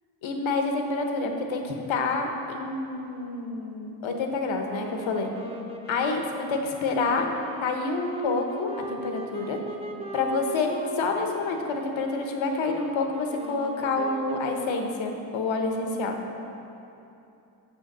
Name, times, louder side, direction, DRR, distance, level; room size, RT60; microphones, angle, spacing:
voice 1, 0.2-5.3 5.9-7.3 7.6-9.6 10.1-10.7 10.9-16.2, left 3 dB, 75° left, 3 dB, 1.0 m, -28 dB
sound 1, 4.7-15.1, right 1 dB, 15° right, 1.0 m, -39 dB
6.7 x 5.5 x 6.0 m, 2.8 s
cardioid pair, 70°, 46 cm